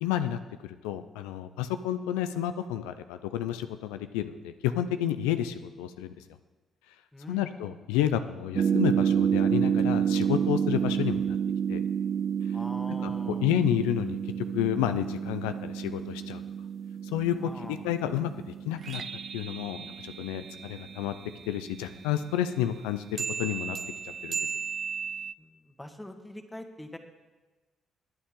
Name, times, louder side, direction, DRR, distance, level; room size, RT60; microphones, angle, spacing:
voice 1, 0.0-6.1 7.3-11.4 11.7-11.8 13.0-13.1 13.4-16.4 17.1-19.0 19.3-21.1 21.5-23.8 24.2-24.4, left 11 dB, 85° left, 10 dB, 0.4 m, -30 dB
voice 2, 7.1-8.0 12.5-13.5 17.4-17.9 25.4-27.0, left 1 dB, 10° left, 5 dB, 1.7 m, -44 dB
sound 1, 8.6-21.6 23.2-25.3, right 8 dB, 55° right, 0.4 m, -30 dB
20.0 x 8.7 x 3.7 m, 1.2 s
hypercardioid pair, 55°, 0 cm